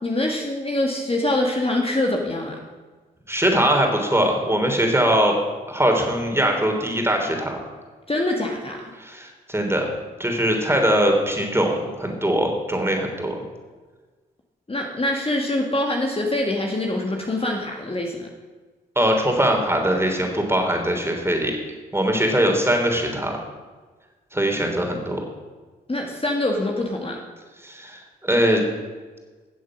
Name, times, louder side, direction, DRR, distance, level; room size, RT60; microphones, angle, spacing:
voice 1, 0.0-2.6 8.1-8.9 14.7-18.3 25.9-27.2, left 1 dB, 30° left, 0 dB, 2.0 m, -24 dB
voice 2, 3.3-5.3 5.7-7.6 9.0-9.9 10.2-13.4 18.9-21.6 21.9-23.3 24.3-25.2 27.6-28.6, equal, 10° right, 2 dB, 3.4 m, -21 dB
14.0 x 7.4 x 6.2 m, 1.4 s
supercardioid pair, 40°, 20 cm